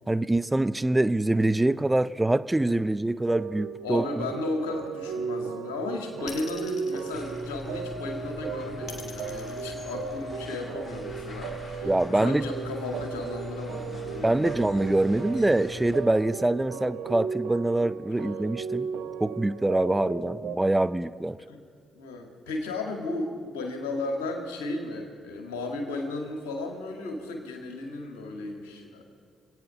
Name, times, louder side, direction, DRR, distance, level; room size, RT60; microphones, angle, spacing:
voice 1, 0.1-4.0 11.8-12.4 14.2-18.9 19.2-21.4, right 2 dB, 15° right, 14 dB, 0.5 m, -24 dB
sound 1, 3.3-20.6, right 6 dB, 75° right, 0.8 m, -36 dB
voice 2, 3.8-14.6 16.7-16.9 18.2-18.3 21.5-21.6 21.9-29.0, left 2 dB, 85° left, 2 dB, 2.1 m, -35 dB
sound 2, 6.3-8.0 8.9-10.6, left 5 dB, 65° left, 2.4 m, -44 dB
sound 3, 7.1-16.0, left 2 dB, 40° left, 3.9 m, -41 dB
26.5 x 9.4 x 5.8 m, 2.1 s
hypercardioid pair, 45°, 0 cm